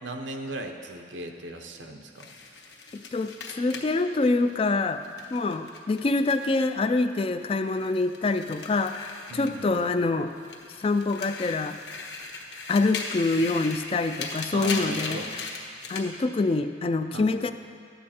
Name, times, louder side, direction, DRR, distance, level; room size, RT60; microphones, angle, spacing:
voice 1, 0.0-2.3 9.3-9.9 14.5-15.3 17.1-17.3, right 1 dB, 80° right, 4 dB, 0.9 m, -37 dB
sound 1, 2.2-6.7 7.0-10.0 10.4-16.1, left 4 dB, 65° left, 1.1 m, -38 dB
voice 2, 2.9-5.0 5.3-10.3 10.8-11.8 12.7-15.2 15.9-17.5, left 3 dB, 30° left, 9 dB, 0.3 m, -25 dB
12.5 x 8.5 x 4.3 m, 2.3 s
head